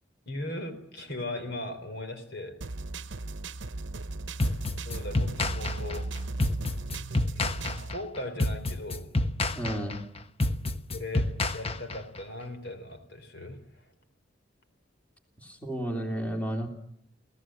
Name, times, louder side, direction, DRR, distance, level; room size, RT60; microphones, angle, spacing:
voice 1, 0.3-2.6 4.8-6.1 7.3-9.2 10.9-13.9, left 1 dB, 65° left, 7 dB, 4.0 m, -38 dB
sound 1, 2.6-8.0, right 2 dB, 75° right, 0.9 m, -37 dB
sound 2, 4.4-12.2, left 2 dB, 35° left, 1.0 m, -29 dB
voice 2, 9.5-10.0 15.4-16.7, right 1 dB, 10° left, 2 dB, 3.3 m, -32 dB
28.5 x 17.5 x 7.8 m, 0.72 s
head